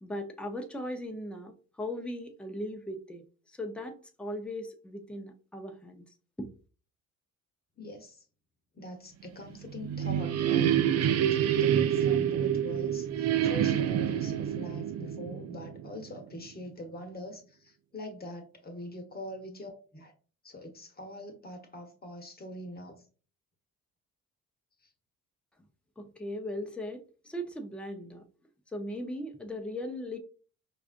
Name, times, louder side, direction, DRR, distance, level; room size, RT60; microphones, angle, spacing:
voice 1, 0.0-3.2 3.5-6.1 6.4-6.5 26.0-28.2 28.7-30.2, left 1 dB, 5° left, 0.6 m, -38 dB
voice 2, 7.8-8.2 8.7-20.1 20.4-23.0 24.8-24.9, left 1 dB, 30° left, 1.0 m, -43 dB
sound 1, 9.5-16.2, right 10 dB, 55° right, 0.5 m, -27 dB
4.7 x 2.5 x 2.5 m
cardioid pair, 90°, 30 cm